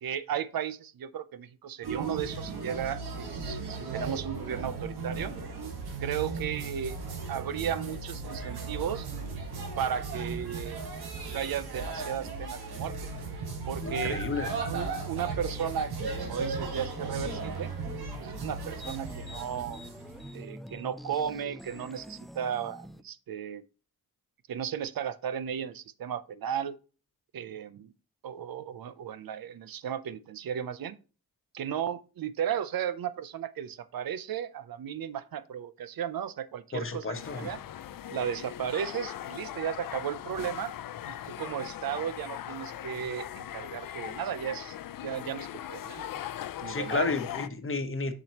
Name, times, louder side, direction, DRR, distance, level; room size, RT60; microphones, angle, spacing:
voice 1, 0.0-5.3 6.0-7.0 7.3-9.1 9.8-10.8 11.3-12.9 13.7-14.2 14.5-17.7 18.2-19.8 20.3-23.6 24.5-26.8 27.3-27.9 28.2-31.0 31.5-37.6 38.1-40.7 41.0-44.8 45.0-46.1 46.6-47.1, right 9 dB, 65° right, 0.6 m, -35 dB
sound 1, 1.8-20.4, right 3 dB, 90° right, 1.7 m, -36 dB
voice 2, 13.8-14.5 36.7-37.5 46.7-48.1, left 4 dB, 35° left, 1.0 m, -32 dB
sound 2, 16.0-23.0, equal, ahead, 0.4 m, -46 dB
sound 3, 37.1-47.5, left 11 dB, 65° left, 0.5 m, -40 dB
7.3 x 6.0 x 2.9 m
cardioid pair, 90°, 37 cm